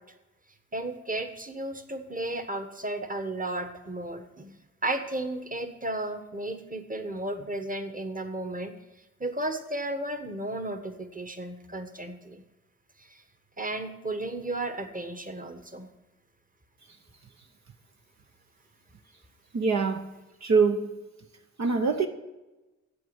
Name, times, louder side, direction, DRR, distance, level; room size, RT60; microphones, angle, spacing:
voice 1, 0.7-8.7 9.2-12.4 13.1-13.2 13.6-15.9, right 1 dB, 25° right, 8 dB, 1.4 m, -34 dB
voice 2, 19.5-20.0 20.4-20.8 21.6-22.1, right 5 dB, 60° right, 4 dB, 1.0 m, -23 dB
8.5 x 7.8 x 8.1 m, 1.1 s
cardioid pair, 60°, 30 cm